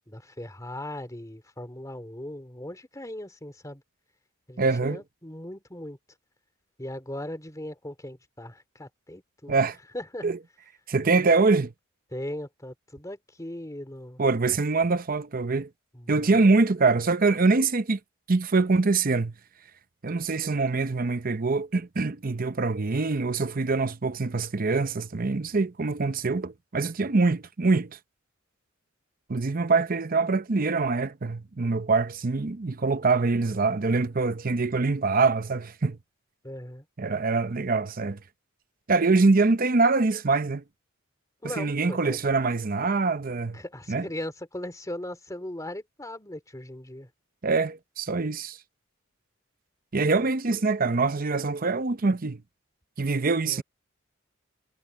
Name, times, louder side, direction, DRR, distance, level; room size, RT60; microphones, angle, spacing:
voice 1, 0.1-3.8 4.5-6.0 6.8-9.6 9.9-10.3 12.1-14.2 15.9-16.4 36.4-36.8 41.4-42.2 43.5-47.1 53.4-53.6, left 1 dB, 15° left, 2.9 m, -38 dB
voice 2, 4.6-5.0 9.5-9.8 10.2-10.4 10.9-11.7 14.2-15.7 16.1-18.0 18.3-19.3 20.0-28.0 29.3-36.0 37.0-38.2 38.9-40.6 41.4-43.6 43.9-44.1 47.4-48.6 49.9-52.4 53.0-53.6, right 3 dB, 45° right, 0.7 m, -24 dB
head